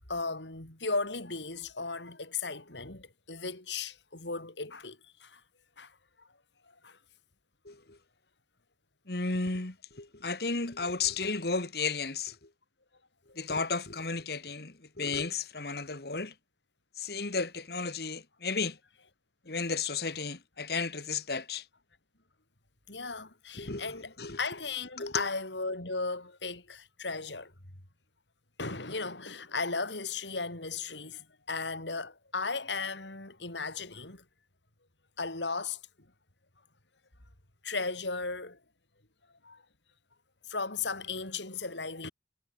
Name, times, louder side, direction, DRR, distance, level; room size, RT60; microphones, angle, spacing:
voice 1, 0.1-5.4 5.8-6.3 6.8-7.0 22.9-27.5 28.6-34.2 35.2-35.8 37.6-38.6 39.4-39.6 40.5-42.1, left 4 dB, 85° left, 5.0 m, -36 dB
voice 2, 7.7-8.0 9.1-12.4 13.4-16.3 17.0-18.8 19.5-21.6 23.6-24.4 25.0-25.3, left 4 dB, 60° left, 1.8 m, -33 dB
head